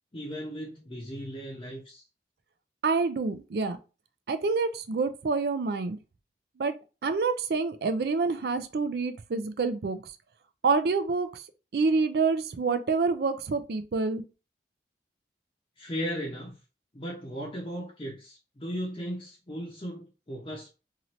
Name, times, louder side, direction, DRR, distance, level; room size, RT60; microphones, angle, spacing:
voice 1, 0.1-2.0 15.8-16.6 16.9-20.7, equal, 30° left, 0.6 m, -36 dB
voice 2, 2.8-3.8 4.3-6.0 6.6-6.8 7.0-10.0 10.6-11.4 11.7-14.2, right 4 dB, 60° right, 0.4 m, -27 dB
2.8 x 2.6 x 3.0 m
head